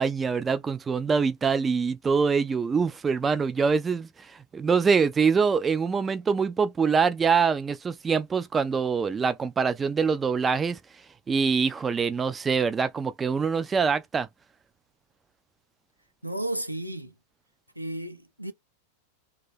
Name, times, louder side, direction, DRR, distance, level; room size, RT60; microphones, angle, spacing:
voice 1, 0.0-10.8 11.3-14.3, right 5 dB, 15° right, 0.3 m, -24 dB
voice 2, 16.2-17.1 17.8-18.5, right 1 dB, 90° right, 0.4 m, -33 dB
2.6 x 2.2 x 3.5 m
figure-of-eight pair, 90°, 0 cm